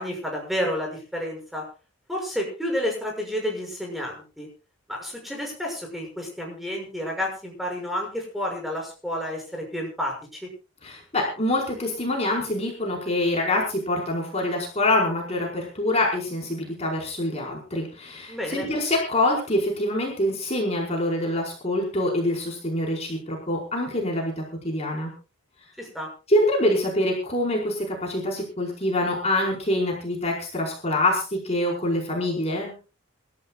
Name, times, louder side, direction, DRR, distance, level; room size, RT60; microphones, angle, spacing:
voice 1, 0.0-1.6 2.1-4.5 4.9-10.5 18.3-18.7 25.8-26.1, equal, ahead, 0 dB, 6.4 m, -30 dB
voice 2, 10.8-25.1 26.3-32.7, left 1 dB, 30° left, -1 dB, 4.9 m, -25 dB
27.5 x 13.5 x 2.4 m, 0.34 s
head